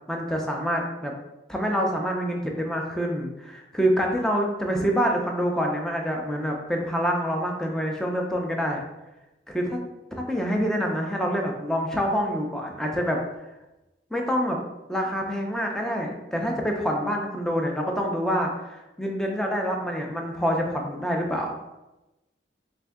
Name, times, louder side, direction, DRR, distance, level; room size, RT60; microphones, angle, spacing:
voice 1, 0.1-1.1 1.5-8.8 9.5-9.8 10.1-13.2 14.1-14.6 14.9-21.6, equal, 5° left, 1 dB, 0.5 m, -26 dB
3.3 x 2.6 x 3.5 m, 0.99 s
head